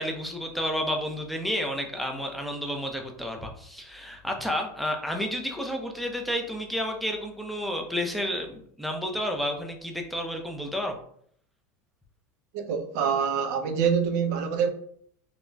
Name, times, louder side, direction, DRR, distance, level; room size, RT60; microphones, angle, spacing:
voice 1, 0.0-11.0, equal, ahead, 0.5 m, -31 dB
voice 2, 12.5-14.7, right 7 dB, 70° right, 0.5 m, -25 dB
3.7 x 2.1 x 2.2 m
supercardioid pair, 115°, 9 cm